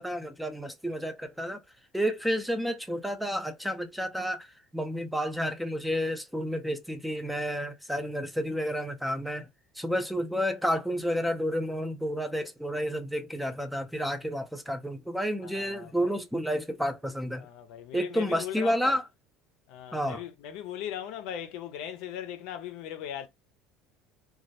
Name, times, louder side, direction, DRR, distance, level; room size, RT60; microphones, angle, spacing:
voice 1, 0.0-1.6 1.9-4.5 4.7-9.5 9.8-17.5 17.9-19.0 19.9-20.2, equal, ahead, 0.5 m, -30 dB
voice 2, 15.4-16.2 17.4-19.0 19.7-23.3, left 10 dB, 70° left, 0.5 m, -39 dB
2.2 x 2.1 x 2.8 m
supercardioid pair, 110°, 0 cm